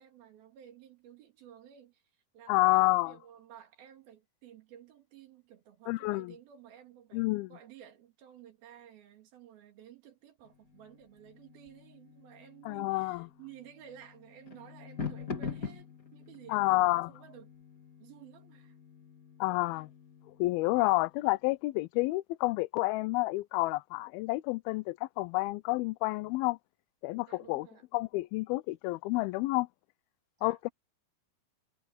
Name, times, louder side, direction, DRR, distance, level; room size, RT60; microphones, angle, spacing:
voice 1, 0.0-2.0 2.3-17.5 18.0-18.8 19.7-19.8 27.3-27.8 30.4-30.6, right 10 dB, 70° right, 4.1 m, -54 dB
voice 2, 2.5-3.1 5.9-6.3 7.1-7.5 12.7-13.3 16.5-17.1 19.4-19.9 20.4-26.6 27.0-27.7 27.9-29.7 30.4-30.7, left 21 dB, 80° left, 2.4 m, -29 dB
sound 1, 10.4-21.2, left 5 dB, 25° left, 2.8 m, -45 dB
omnidirectional pair, 4.4 m